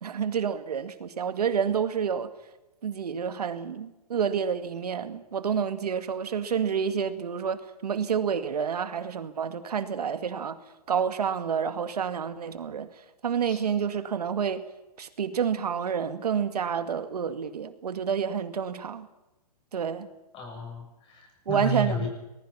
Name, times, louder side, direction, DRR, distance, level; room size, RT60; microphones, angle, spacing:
voice 1, 0.0-2.3 2.8-10.6 10.9-12.9 13.2-14.6 15.0-19.1 19.7-20.1 21.5-22.1, right 7 dB, 75° right, 2.2 m, -29 dB
voice 2, 20.3-22.1, right 1 dB, 25° left, 7.2 m, -32 dB
24.0 x 20.5 x 5.8 m
hypercardioid pair, 135°, 20 cm